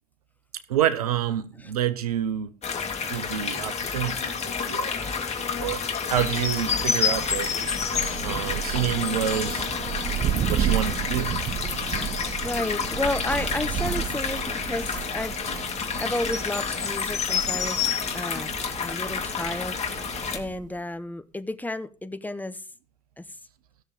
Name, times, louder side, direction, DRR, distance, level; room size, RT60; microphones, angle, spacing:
voice 1, 0.7-2.5 3.1-5.2 5.6-7.5 8.2-9.7 10.5-11.3, right 10 dB, 85° right, 0.9 m, -28 dB
sound 1, 2.6-20.4, left 6 dB, 35° left, 2.6 m, -29 dB
Thunder, 6.2-20.8, right 10 dB, 45° right, 0.9 m, -33 dB
voice 2, 12.4-18.5 18.8-22.6 23.2-23.3, left 2 dB, 10° left, 1.2 m, -32 dB
16.0 x 7.1 x 5.2 m
hypercardioid pair, 65°, 19 cm